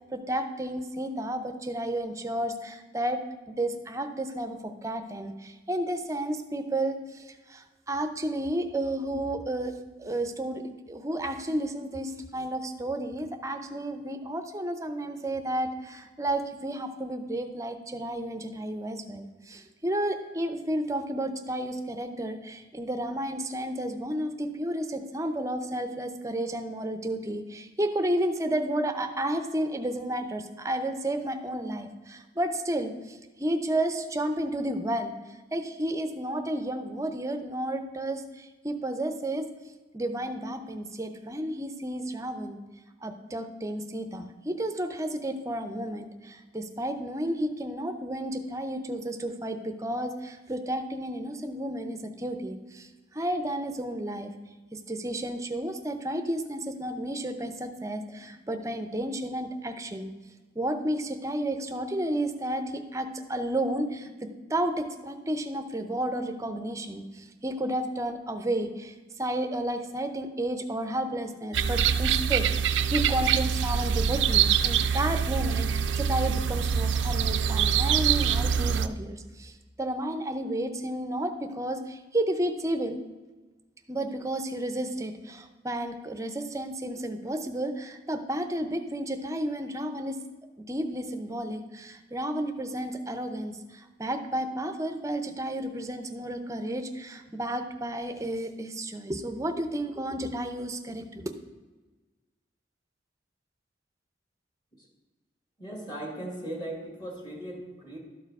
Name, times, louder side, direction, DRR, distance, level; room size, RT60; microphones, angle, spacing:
voice 1, 0.1-9.7 10.0-10.6 10.9-35.1 35.5-39.5 39.9-42.6 43.0-54.3 54.7-60.1 60.5-83.0 83.9-90.2 90.7-101.3, right 1 dB, 15° right, 7 dB, 0.6 m, -32 dB
sound 1, 71.5-78.9, right 7 dB, 85° right, 0.4 m, -25 dB
voice 2, 105.6-108.0, right 1 dB, 25° left, 0 dB, 1.9 m, -38 dB
12.5 x 4.6 x 4.7 m, 1.3 s
head